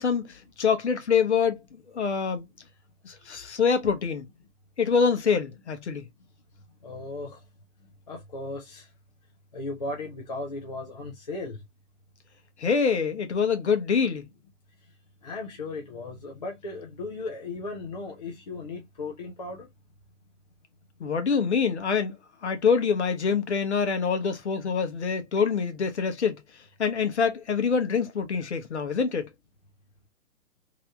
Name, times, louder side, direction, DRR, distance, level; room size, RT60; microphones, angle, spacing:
voice 1, 0.0-2.5 3.0-4.3 4.8-6.1 12.6-14.3 21.0-22.2 22.4-26.4 26.8-29.3, left 6 dB, 50° left, 0.9 m, -25 dB
voice 2, 6.8-7.4 8.1-8.9 9.5-11.6 15.2-19.7, left 2 dB, 30° left, 0.5 m, -36 dB
3.3 x 2.9 x 2.2 m
figure-of-eight pair, 130°, 44 cm